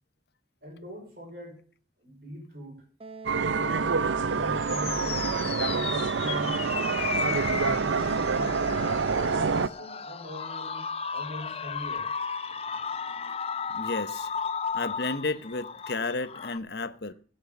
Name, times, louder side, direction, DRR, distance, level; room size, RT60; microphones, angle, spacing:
voice 1, 0.6-1.6 2.0-2.8 3.5-5.3 5.6-6.8 7.2-8.6 9.2-10.8 11.1-12.1, equal, 55° right, 5.3 m, -41 dB
Wind instrument woodwind instrument, 3.0-7.7, right 4 dB, 30° right, 1.0 m, -43 dB
sound 1, 3.3-9.7, right 5 dB, 80° right, 0.6 m, -27 dB
sound 2, 4.2-16.6, left 6 dB, 30° left, 0.7 m, -34 dB
voice 2, 13.7-14.3 14.7-17.1, left 3 dB, 60° left, 1.0 m, -32 dB
16.5 x 6.6 x 7.1 m
head